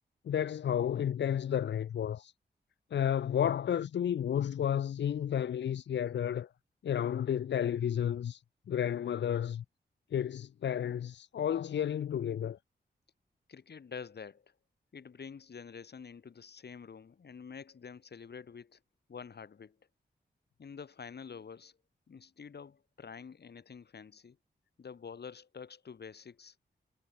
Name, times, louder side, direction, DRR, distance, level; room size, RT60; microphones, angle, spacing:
voice 1, 0.3-2.3 2.9-6.5 6.8-8.4 8.7-9.6 10.1-12.6, left 9 dB, 85° left, 0.6 m, -32 dB
voice 2, 13.5-14.5 14.9-18.8 19.1-19.8 20.6-21.8 22.1-24.4 24.8-26.6, left 6 dB, 65° left, 5.2 m, -47 dB
wide cardioid pair, 95°, 18 cm